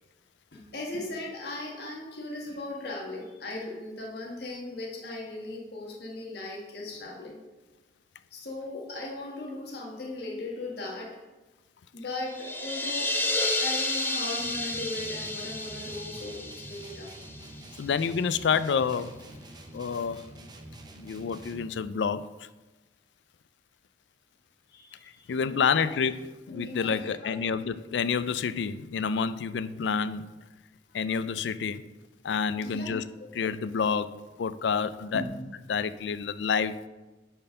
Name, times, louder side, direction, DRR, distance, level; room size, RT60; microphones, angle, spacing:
voice 1, 0.5-7.4 8.3-11.2 11.9-13.2 13.6-17.3 24.7-25.9 26.5-27.3 32.6-33.3 35.1-35.2, left 2 dB, 65° left, 1.5 m, -38 dB
sound 1, 12.3-17.9, left 2 dB, 10° left, 0.7 m, -31 dB
sound 2, 14.4-21.9, right 1 dB, 25° right, 0.7 m, -47 dB
voice 2, 17.8-19.1 19.7-20.2 21.0-22.3 25.3-30.4 30.9-31.8 32.2-33.0 33.3-35.2 35.7-36.9, left 6 dB, 80° left, 0.4 m, -28 dB
8.7 x 4.5 x 5.5 m
head